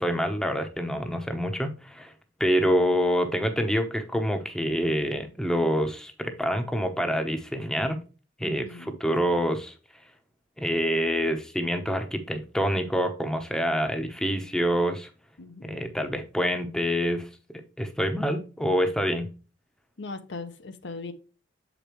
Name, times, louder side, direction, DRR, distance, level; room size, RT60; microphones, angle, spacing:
voice 1, 0.0-2.1 2.4-8.0 8.4-9.7 10.6-15.1 15.6-17.3 17.5-19.3, equal, 5° left, 6 dB, 0.8 m, -26 dB
voice 2, 8.4-9.0 15.4-15.8 20.0-21.1, left 3 dB, 65° left, 9 dB, 0.7 m, -39 dB
7.3 x 5.1 x 3.0 m, 0.34 s
head